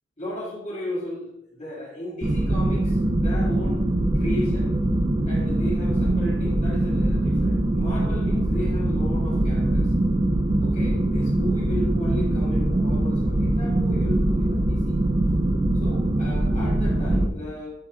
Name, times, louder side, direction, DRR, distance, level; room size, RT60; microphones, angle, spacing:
voice 1, 0.2-3.8 4.1-4.7 5.3-9.9 10.6-14.8 15.7-17.7, left 1 dB, 40° left, -4 dB, 1.9 m, -35 dB
sound 1, 2.2-17.3, right 1 dB, 25° right, 0.4 m, -22 dB
10.0 x 6.8 x 2.4 m, 0.81 s
head